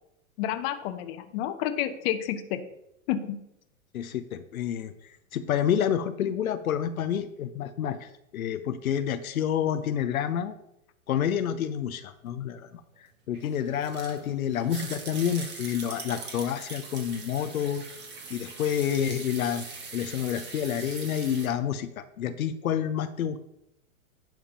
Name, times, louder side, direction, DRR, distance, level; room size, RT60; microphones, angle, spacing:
voice 1, 0.4-2.6 3.1-3.4, left 11 dB, 45° left, 9 dB, 0.9 m, -30 dB
voice 2, 3.9-10.6 11.1-12.7 13.3-17.8 18.3-19.7 19.9-23.4, left 9 dB, 85° left, 10 dB, 0.7 m, -29 dB
sound 1, 13.3-21.5, right 4 dB, 25° right, 1.6 m, -42 dB
10.5 x 3.5 x 5.5 m, 0.82 s
hypercardioid pair, 115°, 41 cm